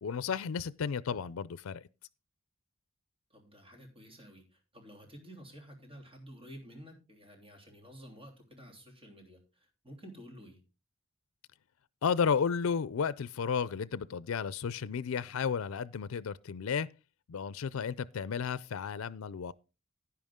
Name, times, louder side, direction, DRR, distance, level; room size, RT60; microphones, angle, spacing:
voice 1, 0.0-1.8 12.0-16.9 17.3-19.5, left 6 dB, 90° left, 0.4 m, -33 dB
voice 2, 3.3-10.6, equal, 25° right, 3.3 m, -51 dB
10.5 x 10.0 x 3.6 m
head